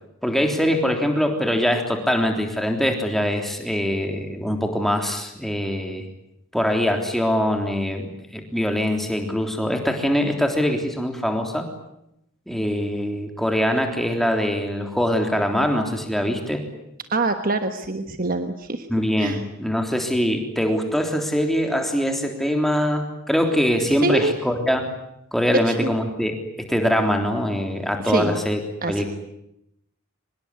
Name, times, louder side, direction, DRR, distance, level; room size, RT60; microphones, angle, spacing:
voice 1, 0.2-6.0 6.5-11.7 12.5-16.6 18.9-24.9 25.3-26.3 26.7-28.6 28.9-29.1, equal, ahead, 3 dB, 3.4 m, -23 dB
voice 2, 17.1-18.9 19.2-19.4 23.9-24.3 25.5-25.9 28.0-28.4 28.8-29.0, right 2 dB, 40° right, 8 dB, 1.3 m, -24 dB
25.0 x 21.0 x 9.7 m, 0.82 s
head